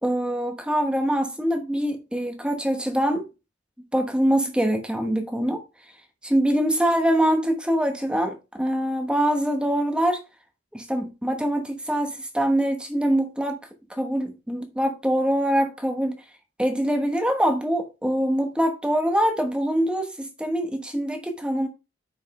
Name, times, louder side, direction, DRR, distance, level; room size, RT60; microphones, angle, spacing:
voice 1, 0.0-3.3 3.9-5.6 6.2-10.2 10.7-13.6 13.9-16.2 16.6-21.7, right 1 dB, 5° right, 1.1 m, -24 dB
9.6 x 5.3 x 3.2 m
head